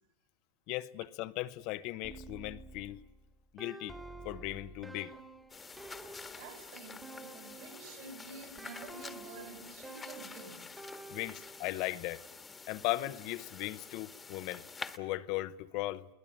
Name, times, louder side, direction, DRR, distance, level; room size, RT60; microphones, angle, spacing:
voice 1, 0.7-3.0 3.5-4.0 4.2-5.1 11.1-12.2 12.7-14.6 15.0-16.1, left 17 dB, 50° left, 0.8 m, -37 dB
rndmfm mgreel, 2.0-8.0 8.6-11.8, right 2 dB, 10° right, 1.7 m, -50 dB
sound 1, 5.5-15.0, left 4 dB, 15° left, 1.4 m, -48 dB
voice 2, 6.4-10.7, right 4 dB, 65° right, 6.6 m, -49 dB
22.5 x 19.0 x 8.8 m
hypercardioid pair, 115°, 0 cm